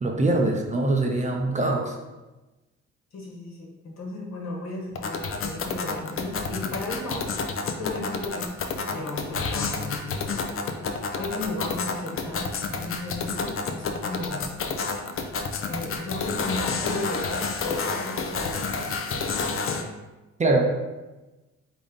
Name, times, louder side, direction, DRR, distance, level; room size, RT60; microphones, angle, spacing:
voice 1, 0.0-2.0 20.4-20.7, right 2 dB, 25° right, 1 dB, 0.6 m, -23 dB
voice 2, 3.1-10.7 11.2-14.5 15.7-18.9, left 2 dB, 65° left, -2 dB, 1.4 m, -35 dB
sound 1, 4.9-19.8, left 4 dB, 45° left, 0.6 m, -30 dB
3.7 x 3.6 x 3.9 m, 1.1 s
cardioid pair, 90°, 30 cm